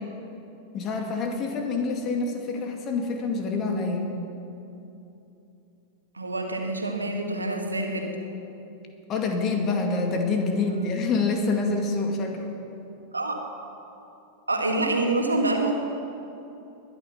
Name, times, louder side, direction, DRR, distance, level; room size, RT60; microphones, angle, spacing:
voice 1, 0.7-4.1 9.1-12.6, left 3 dB, 30° left, 3 dB, 2.3 m, -26 dB
voice 2, 6.1-8.1 10.5-10.9 13.1-13.4 14.5-15.7, right 2 dB, 80° right, 2 dB, 2.0 m, -27 dB
21.0 x 10.5 x 5.9 m, 2.8 s
figure-of-eight pair, 90°, 0 cm